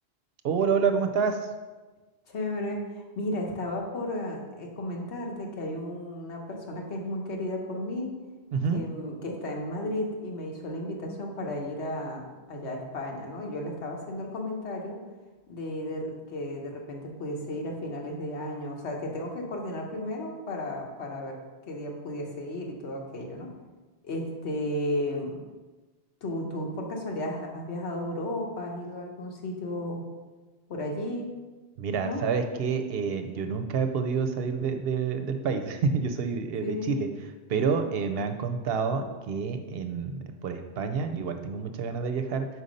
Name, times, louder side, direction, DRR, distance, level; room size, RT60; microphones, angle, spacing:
voice 1, 0.4-1.5 8.5-8.8 31.8-37.1 37.5-42.5, right 5 dB, 70° right, 7 dB, 0.7 m, -28 dB
voice 2, 2.3-8.2 8.7-12.2 12.5-15.0 15.5-21.4 21.7-23.5 24.0-25.4 26.2-30.1 30.7-31.3 32.0-32.2 36.6-36.9, left 1 dB, 80° left, 0 dB, 1.3 m, -34 dB
4.8 x 4.1 x 5.1 m, 1.2 s
omnidirectional pair, 1.1 m